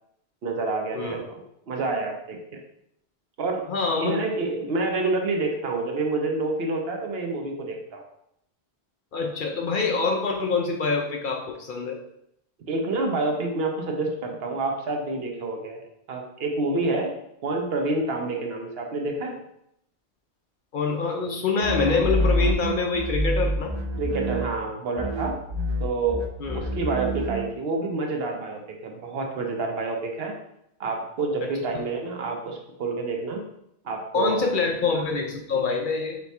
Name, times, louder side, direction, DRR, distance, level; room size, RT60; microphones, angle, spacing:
voice 1, 0.4-1.4 1.7-2.4 3.4-3.7 3.9-8.0 12.7-17.1 17.4-19.4 24.0-25.3 25.8-26.2 26.5-30.3 30.8-33.4 33.8-34.9, right 3 dB, 65° right, 1 dB, 0.9 m, -28 dB
voice 2, 3.7-4.2 9.1-12.0 20.7-23.7 26.4-26.6 31.7-31.8 34.1-36.2, left 4 dB, 60° left, 2 dB, 0.6 m, -25 dB
sound 1, 21.6-24.7 25.0-27.5, equal, 50° right, 0.3 m, -27 dB
4.2 x 2.3 x 4.1 m, 0.77 s
omnidirectional pair, 1.1 m